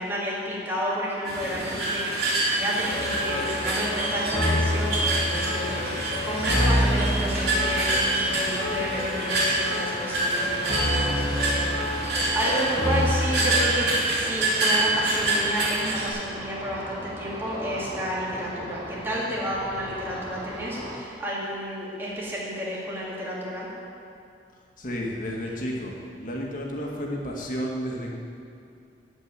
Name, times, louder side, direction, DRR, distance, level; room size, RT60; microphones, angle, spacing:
voice 1, 0.0-2.3 2.5-23.7, equal, 15° right, -7 dB, 2.7 m, -31 dB
sound 1, 1.2-16.1, right 2 dB, 65° right, 3.4 m, -27 dB
Ocean, 2.7-21.0, equal, 35° right, 2.7 m, -40 dB
sound 2, 2.9-13.7, left 1 dB, 30° left, 1.8 m, -28 dB
voice 2, 24.8-25.9 26.2-28.1, equal, 50° left, -1 dB, 1.9 m, -31 dB
14.5 x 5.3 x 9.1 m, 2.4 s
head